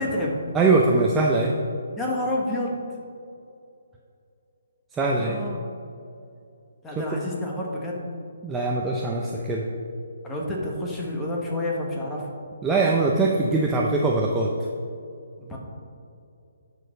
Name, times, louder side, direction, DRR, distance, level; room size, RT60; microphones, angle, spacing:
voice 1, 0.0-0.4 2.0-2.8 5.2-5.6 6.8-8.0 10.2-12.3 15.4-15.6, left 1 dB, 10° left, -2 dB, 1.2 m, -29 dB
voice 2, 0.5-1.5 4.9-5.4 7.0-7.1 8.4-9.6 12.6-14.5, right 3 dB, 10° right, -2 dB, 0.5 m, -22 dB
9.2 x 6.4 x 5.1 m, 2.5 s
hypercardioid pair, 170°, 0 cm